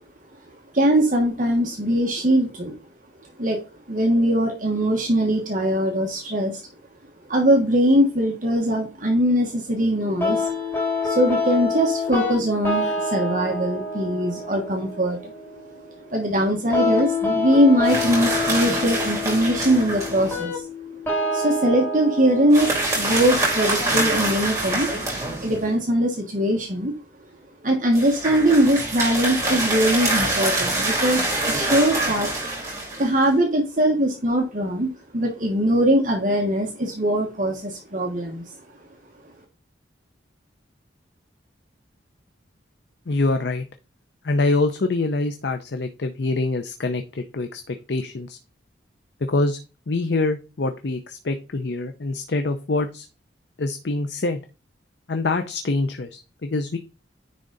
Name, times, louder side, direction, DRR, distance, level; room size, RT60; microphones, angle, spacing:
voice 1, 0.7-2.7 3.4-3.6 3.9-6.6 7.3-10.5 11.0-15.3 16.1-20.6 21.3-24.9 25.4-26.9 27.6-32.3 33.0-38.4, equal, 45° right, 1 dB, 1.4 m, -21 dB
sound 1, 10.2-25.2, left 3 dB, 10° left, 2.7 m, -28 dB
sound 2, 17.8-20.4 22.5-25.7 27.9-33.3, right 2 dB, 15° right, 3.3 m, -25 dB
voice 2, 43.1-43.6 44.2-48.4 49.3-49.6 49.9-53.1 53.6-54.4 55.1-56.8, left 2 dB, 60° left, 7 dB, 0.6 m, -25 dB
9.9 x 3.8 x 4.0 m, 0.32 s
head